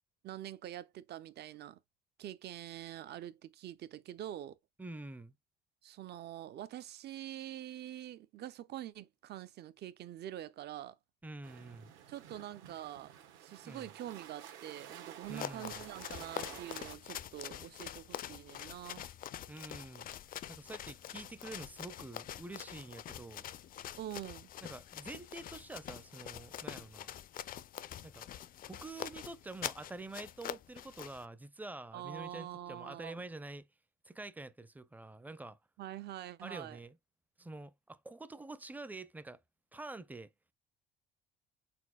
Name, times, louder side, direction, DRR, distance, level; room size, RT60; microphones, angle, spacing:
voice 1, 0.2-1.8 2.2-4.6 5.8-11.0 12.1-13.1 13.4-19.0 24.0-24.5 31.9-33.2 35.8-36.8, right 12 dB, 55° right, 0.6 m, -45 dB
voice 2, 4.8-5.3 11.2-11.9 13.6-13.9 15.3-15.8 19.5-20.1 20.5-23.5 24.6-27.2 28.0-28.3 28.7-33.7 34.0-35.6 36.4-37.0 37.4-39.4 39.7-40.3, right 2 dB, 10° right, 0.5 m, -47 dB
sound 1, 11.4-17.0, right 10 dB, 70° right, 1.2 m, -51 dB
sound 2, 15.2-31.2, left 11 dB, 45° left, 0.4 m, -45 dB
4.3 x 4.1 x 2.3 m
supercardioid pair, 85°, 21 cm